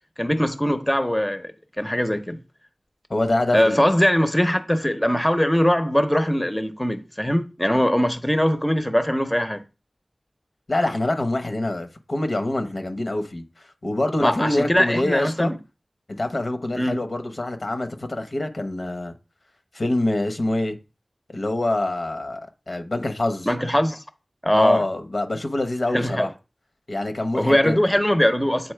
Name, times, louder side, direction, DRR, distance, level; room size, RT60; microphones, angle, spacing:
voice 1, 0.2-2.4 3.5-9.6 14.2-15.6 16.8-17.0 23.5-24.0 24.4-24.8 25.9-26.3 27.3-28.7, equal, 10° left, 0.7 m, -21 dB
voice 2, 3.1-3.8 10.7-15.5 16.1-19.1 19.7-20.8 21.3-22.4 22.7-23.5 24.5-26.3 26.9-28.0, left 1 dB, 65° left, 1.0 m, -25 dB
7.7 x 4.2 x 3.3 m
wide cardioid pair, 50°, 0 cm